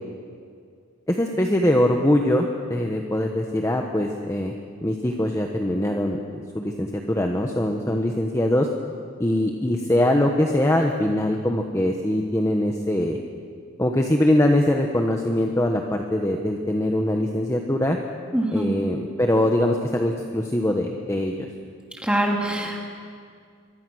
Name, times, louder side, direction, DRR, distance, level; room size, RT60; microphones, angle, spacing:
voice 1, 1.1-4.5 4.8-8.7 9.2-13.2 13.8-18.0 18.5-21.5, left 1 dB, 15° left, 2 dB, 1.1 m, -22 dB
voice 2, 18.3-18.7 22.0-22.8, right 1 dB, 5° right, -1 dB, 2.9 m, -23 dB
24.5 x 23.5 x 6.4 m, 2.2 s
head